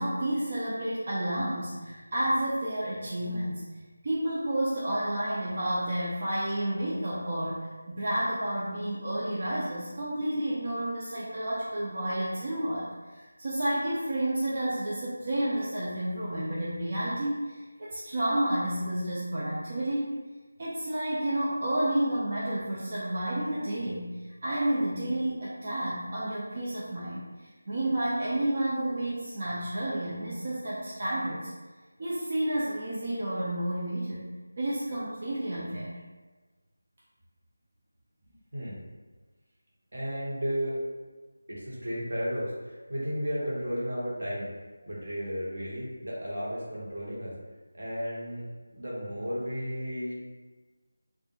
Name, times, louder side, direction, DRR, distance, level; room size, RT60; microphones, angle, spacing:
voice 1, 0.0-3.7 4.0-20.1 20.6-31.5 32.0-34.2 34.6-36.0, right 1 dB, 35° right, -7 dB, 0.3 m, -30 dB
voice 2, 38.3-38.8 39.9-40.8 41.5-44.5 44.9-47.3 47.7-50.4, equal, 65° right, -6 dB, 0.9 m, -34 dB
2.2 x 2.0 x 3.0 m, 1.3 s
figure-of-eight pair, 175°, 0 cm